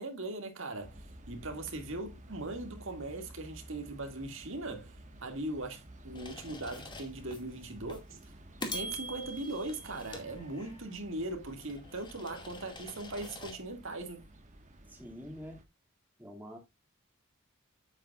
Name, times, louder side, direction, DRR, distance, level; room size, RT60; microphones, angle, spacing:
voice 1, 0.0-4.9 5.2-8.2 8.6-14.2, right 2 dB, 65° right, 2.4 m, -39 dB
sound 1, 0.8-15.6, right 1 dB, 35° right, 1.6 m, -53 dB
sound 2, 6.1-7.4 7.9-8.1 8.6-11.0 11.5-13.6, left 1 dB, 20° left, 2.3 m, -44 dB
voice 2, 14.9-15.6 16.2-16.6, equal, 10° right, 2.6 m, -46 dB
9.4 x 8.8 x 2.5 m
head